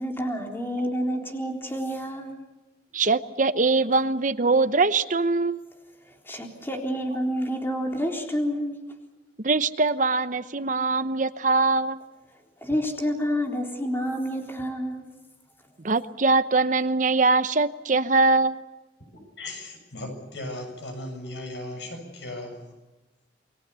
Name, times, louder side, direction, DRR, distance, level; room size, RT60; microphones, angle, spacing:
voice 1, 0.0-2.3 6.0-8.8 12.6-15.1, equal, 15° left, 1 dB, 3.8 m, -29 dB
voice 2, 2.9-5.6 9.4-12.0 15.8-18.6, right 3 dB, 45° right, 12 dB, 0.9 m, -22 dB
voice 3, 19.1-22.7, left 1 dB, 85° left, 5 dB, 7.2 m, -37 dB
29.0 x 21.5 x 7.0 m, 1.1 s
head